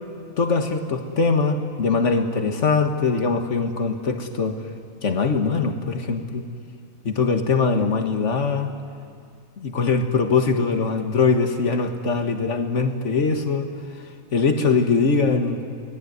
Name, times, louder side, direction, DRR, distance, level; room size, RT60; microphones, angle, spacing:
voice 1, 0.4-4.6 5.0-6.4 7.0-8.7 9.6-13.7 14.3-15.6, left 4 dB, 60° left, 6 dB, 2.0 m, -22 dB
28.5 x 19.5 x 9.5 m, 2.3 s
omnidirectional pair, 1.4 m